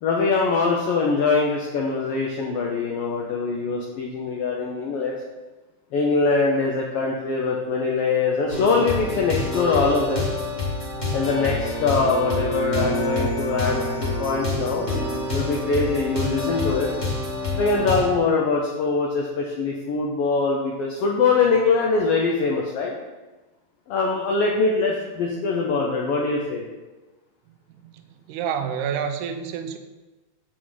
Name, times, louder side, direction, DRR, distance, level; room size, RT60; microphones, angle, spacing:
voice 1, 0.0-5.2 5.9-10.3 11.1-16.9 17.5-22.9 23.9-26.6, left 4 dB, 75° left, -1 dB, 1.4 m, -23 dB
sound 1, 8.5-18.1, left 2 dB, 15° left, 1.8 m, -27 dB
voice 2, 27.9-29.8, right 7 dB, 85° right, 8 dB, 2.1 m, -28 dB
7.5 x 6.2 x 3.9 m, 1.2 s
omnidirectional pair, 3.5 m